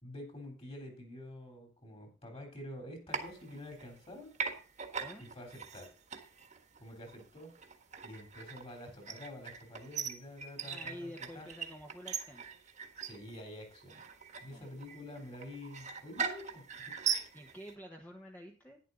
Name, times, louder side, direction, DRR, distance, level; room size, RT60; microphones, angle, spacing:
voice 1, 0.0-4.3 5.2-5.9 6.8-7.5 8.0-11.5 13.0-14.0 14.4-16.9, left 1 dB, 30° left, 3 dB, 3.5 m, -48 dB
sound 1, 3.1-4.1 4.3-17.7, right 6 dB, 40° right, 1.6 m, -41 dB
voice 2, 10.7-12.4 14.5-14.7 17.3-18.8, equal, 10° left, 1 dB, 1.2 m, -49 dB
11.0 x 10.5 x 4.0 m, 0.35 s
head